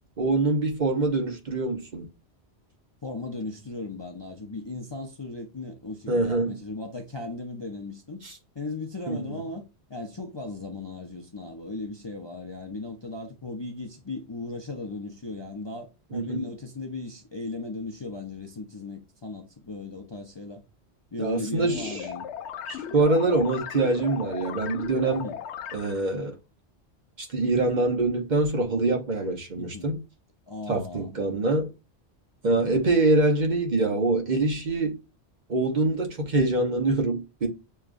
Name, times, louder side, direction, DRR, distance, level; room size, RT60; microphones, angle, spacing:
voice 1, 0.2-2.1 6.1-6.6 8.2-8.3 9.1-9.4 16.1-16.4 21.2-22.1 22.7-25.3 25.7-26.4 27.2-30.0 30.7-31.7 32.4-35.0 35.5-37.5, right 2 dB, 45° right, 0.9 m, -24 dB
voice 2, 3.0-8.2 8.5-9.6 9.9-20.6 21.1-22.3 25.1-25.4 29.5-29.9 30.5-31.1 32.4-32.7, left 3 dB, 30° left, 0.5 m, -37 dB
sound 1, 21.7-26.1, left 8 dB, 85° left, 0.9 m, -37 dB
6.5 x 2.4 x 2.4 m
omnidirectional pair, 1.1 m